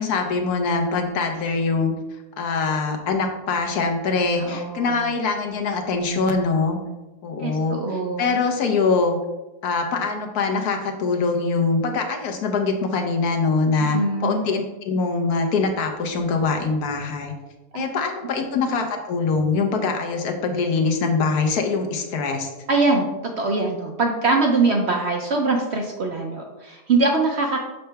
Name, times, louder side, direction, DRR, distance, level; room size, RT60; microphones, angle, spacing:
voice 1, 0.0-1.9 2.4-6.8 7.2-7.8 8.2-9.2 9.6-17.3 17.7-22.5, left 4 dB, 75° left, 4 dB, 1.3 m, -23 dB
voice 2, 4.4-5.1 7.4-8.4 13.8-14.4 17.7-17.8 22.7-23.1 23.4-27.6, right 3 dB, 55° right, 2 dB, 0.8 m, -23 dB
6.7 x 5.5 x 3.4 m, 1.1 s
omnidirectional pair, 1.7 m